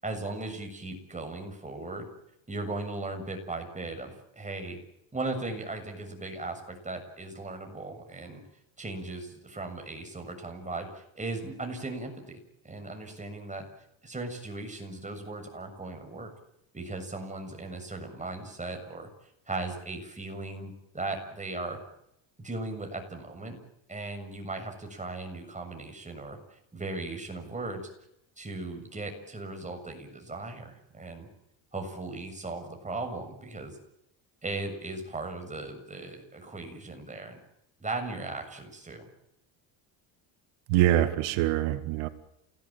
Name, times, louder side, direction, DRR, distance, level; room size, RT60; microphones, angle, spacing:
voice 1, 0.0-2.1 2.5-4.8 5.1-8.4 8.8-12.4 12.6-13.7 14.0-16.3 16.7-19.1 19.5-21.8 22.4-23.6 23.9-27.8 28.4-31.3 31.7-33.8 34.4-37.4 37.8-39.1, right 2 dB, 15° right, 4 dB, 7.1 m, -37 dB
voice 2, 40.7-42.1, right 13 dB, 85° right, 9 dB, 2.2 m, -24 dB
28.5 x 18.0 x 9.1 m, 0.80 s
cardioid pair, 110°, 47 cm